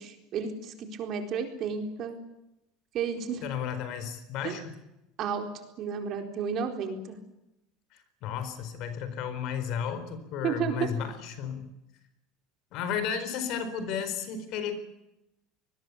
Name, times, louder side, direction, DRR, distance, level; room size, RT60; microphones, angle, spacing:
voice 1, 0.0-2.2 2.9-3.4 4.4-4.6 5.2-5.5 5.8-7.2 10.4-10.8, right 6 dB, 40° right, 5 dB, 4.2 m, -32 dB
voice 2, 3.4-4.8 8.2-11.7 12.7-14.8, left 7 dB, 50° left, 11 dB, 4.5 m, -33 dB
26.5 x 21.0 x 8.5 m, 0.89 s
cardioid pair, 160°, 0 cm